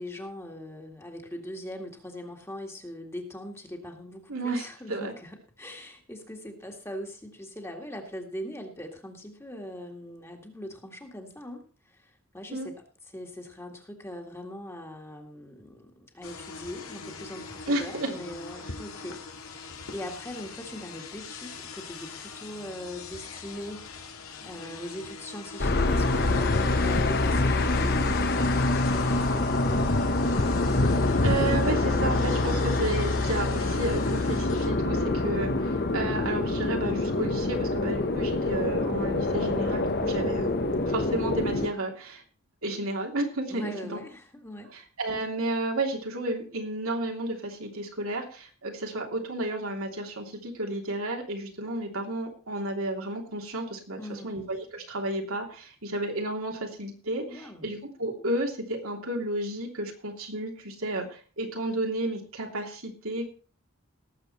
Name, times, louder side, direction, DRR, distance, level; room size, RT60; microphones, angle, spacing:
voice 1, 0.0-12.8 13.1-23.9 24.4-29.9 43.5-44.7 54.0-54.4 57.3-57.7, left 1 dB, 10° left, 2 dB, 1.9 m, -41 dB
voice 2, 4.3-5.1 12.5-12.7 17.7-18.1 31.2-40.5 40.9-42.2 42.6-44.0 44.7-63.3, right 1 dB, 80° right, 1 dB, 3.0 m, -32 dB
sound 1, 16.2-34.7, left 5 dB, 90° left, 2.2 m, -42 dB
sound 2, 25.6-41.7, left 2 dB, 50° left, 1.1 m, -25 dB
18.5 x 7.7 x 4.3 m, 0.38 s
head